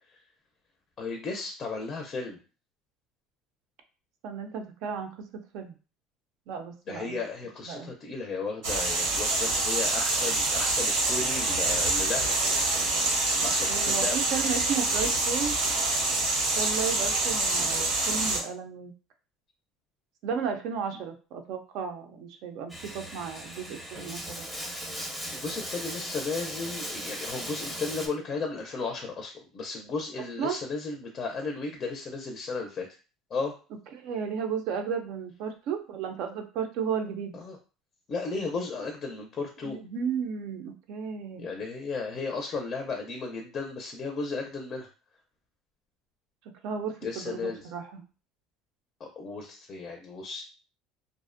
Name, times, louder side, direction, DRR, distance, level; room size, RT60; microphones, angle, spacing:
voice 1, 1.0-2.4 6.9-12.3 13.4-14.2 25.3-32.9 33.3-33.5 37.3-37.6 38.1-39.8 41.4-44.9 47.0-47.7 49.0-50.4, left 4 dB, 35° left, 2 dB, 0.4 m, -34 dB
voice 2, 4.2-5.8 6.5-7.2 7.6-7.9 13.4-15.6 16.5-18.9 20.2-24.5 30.4-30.6 33.9-37.4 39.6-41.5 46.6-48.0, right 6 dB, 65° right, 5 dB, 0.5 m, -34 dB
sound 1, 8.6-18.4, right 2 dB, 90° right, 0.8 m, -26 dB
Bathtub (filling or washing), 22.7-28.1, equal, 5° right, 0.6 m, -37 dB
2.5 x 2.0 x 2.5 m, 0.35 s
cardioid pair, 125°, 0 cm